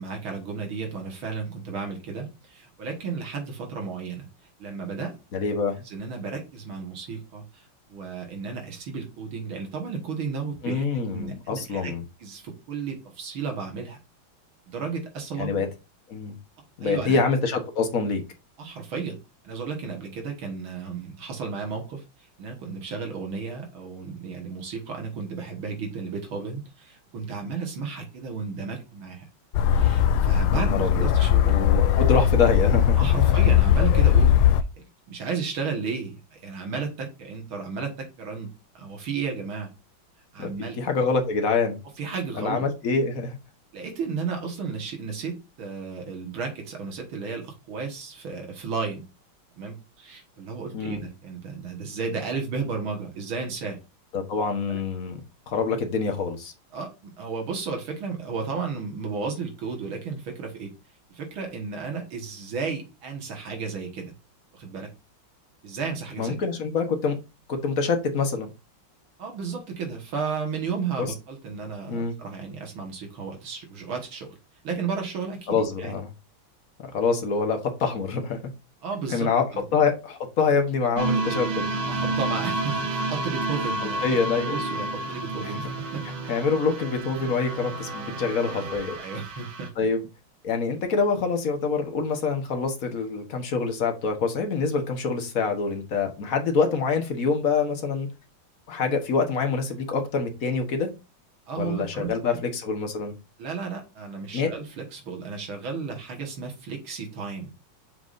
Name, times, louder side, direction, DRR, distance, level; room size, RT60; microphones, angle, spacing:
voice 1, 0.0-4.3 4.6-5.2 5.9-10.8 11.1-11.9 12.2-14.0 14.7-15.6 16.8-17.2 18.6-19.2 19.4-29.3 29.7-31.5 33.0-34.4 35.1-39.7 40.3-40.8 42.0-42.7 43.7-49.0 49.6-53.8 54.7-54.8 56.7-60.7 61.1-64.1 64.5-64.9 65.6-66.4 69.2-74.4 74.6-76.0 78.8-79.6 81.9-84.2 84.5-86.0 89.0-89.7 101.5-102.4 103.4-107.5, right 5 dB, 80° right, 2 dB, 2.5 m, -33 dB
voice 2, 5.3-5.8 10.6-12.0 15.4-15.7 16.1-16.3 16.8-18.2 30.5-31.1 31.4-33.2 40.4-40.5 40.8-41.8 42.4-43.4 50.7-51.0 54.1-55.2 55.5-56.5 66.2-67.2 67.5-68.5 71.0-71.1 71.9-72.1 75.5-76.1 76.9-78.4 79.1-79.4 79.7-81.6 84.0-84.5 85.4-85.6 86.0-89.0 89.8-90.1 90.4-98.1 98.7-100.9 101.6-103.1 104.3-104.5, left 4 dB, 45° left, 5 dB, 1.6 m, -25 dB
sound 1, 29.5-34.6, left 10 dB, 85° left, 1.4 m, -19 dB
sound 2, 81.0-89.7, right 2 dB, 60° right, 1.8 m, -30 dB
6.8 x 6.0 x 2.6 m, 0.28 s
omnidirectional pair, 2.2 m